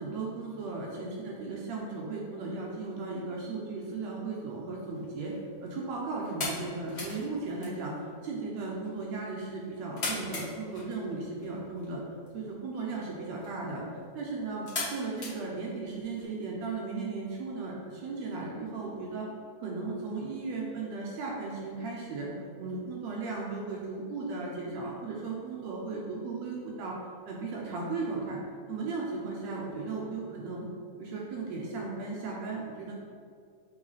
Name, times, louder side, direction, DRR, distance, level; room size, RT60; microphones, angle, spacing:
voice 1, 0.0-5.3 5.6-7.9 8.2-12.0 12.3-19.3 19.6-22.3 22.6-27.0 27.3-28.4 28.7-30.7 31.0-32.9, right 3 dB, 70° right, -3 dB, 1.8 m, -36 dB
sound 1, 4.8-16.2, left 2 dB, 45° left, 0.8 m, -42 dB
7.9 x 3.2 x 4.0 m, 2.3 s
omnidirectional pair, 3.5 m